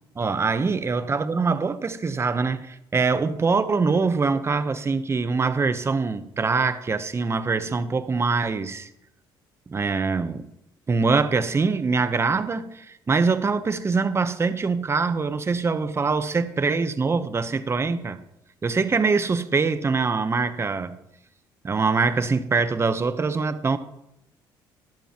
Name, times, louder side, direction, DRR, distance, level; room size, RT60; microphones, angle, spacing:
voice 1, 0.2-8.9 9.7-10.4 10.9-18.2 18.6-20.9 21.6-23.8, right 4 dB, 30° right, 0.8 m, -23 dB
12.5 x 10.5 x 3.0 m
cardioid pair, 85°, 9 cm